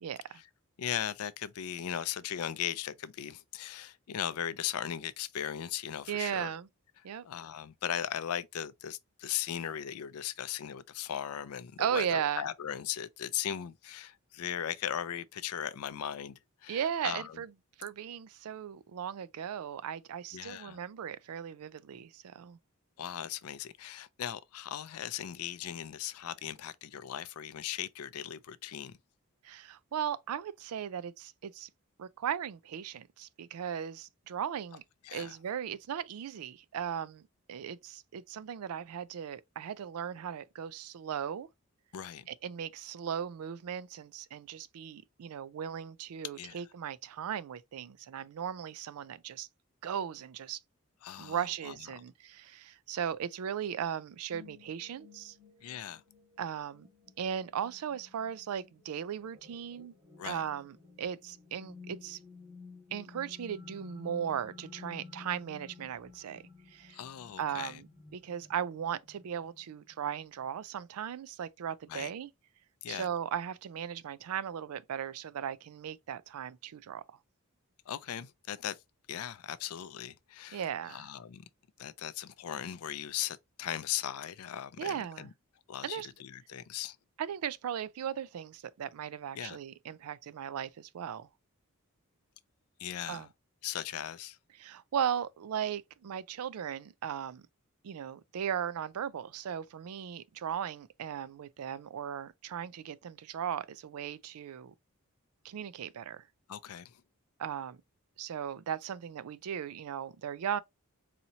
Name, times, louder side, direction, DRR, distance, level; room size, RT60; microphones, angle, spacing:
voice 1, 0.0-0.4 6.1-6.7 7.0-7.3 11.8-12.4 16.7-17.5 17.8-22.6 29.4-31.7 32.0-34.8 35.1-41.5 42.3-49.5 49.8-50.6 51.2-55.4 56.4-56.9 57.2-59.9 60.2-62.2 62.9-66.4 66.7-67.0 67.4-72.3 72.9-77.0 80.5-81.1 84.8-85.3 85.8-86.1 87.2-91.3 93.1-93.3 94.6-97.4 97.8-104.7 105.4-106.2 107.4-107.8 108.2-110.6, right 8 dB, 90° right, 0.4 m, -37 dB
voice 2, 0.8-6.5 7.0-17.4 20.3-20.8 23.0-29.0 35.0-35.4 41.9-42.3 46.4-46.6 51.0-51.8 55.6-56.0 60.2-60.4 66.9-67.8 71.9-72.1 72.8-73.1 77.9-78.8 79.1-80.6 80.9-81.4 81.8-85.3 85.7-87.0 89.4-89.6 92.8-93.3 93.6-94.4 106.5-107.0, left 10 dB, 85° left, 0.4 m, -38 dB
sound 1, 54.3-70.5, left 4 dB, 30° right, 2.1 m, -54 dB
4.2 x 2.8 x 2.7 m
head